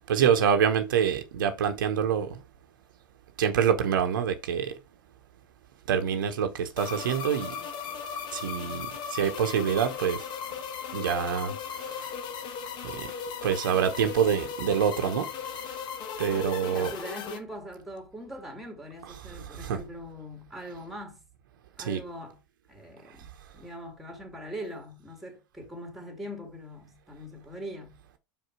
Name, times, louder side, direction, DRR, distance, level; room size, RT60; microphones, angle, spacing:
voice 1, 0.1-2.4 3.4-4.7 5.9-7.5 8.3-10.2 10.9-12.1 12.8-13.1 13.4-15.3 16.2-16.9 19.0-19.8 21.8-22.0, right 8 dB, 75° right, 0.9 m, -26 dB
sound 1, 6.8-17.4, left 7 dB, 45° left, 1.3 m, -37 dB
voice 2, 16.6-21.2 21.8-22.4 22.7-28.0, equal, ahead, 2.6 m, -41 dB
5.3 x 5.0 x 4.7 m
hypercardioid pair, 95°, 11 cm